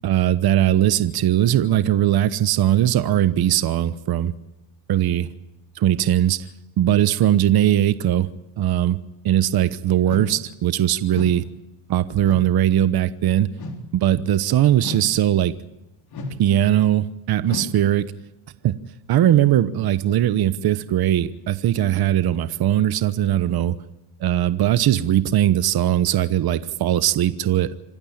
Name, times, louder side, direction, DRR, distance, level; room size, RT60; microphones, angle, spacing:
voice 1, 0.0-4.3 4.9-5.3 5.8-6.5 6.8-8.3 8.6-9.0 9.2-11.4 11.9-13.5 13.9-15.5 16.4-18.1 18.6-18.7 19.1-23.8 24.2-27.7, right 12 dB, 50° right, 13 dB, 1.1 m, -19 dB
sound 1, 10.1-10.4 11.1-11.4 12.2-12.5 13.5-13.9 14.8-15.2 16.1-16.5 17.4-17.8, left 2 dB, 50° left, 4.2 m, -33 dB
26.5 x 12.5 x 8.7 m, 0.96 s
cardioid pair, 105°, 48 cm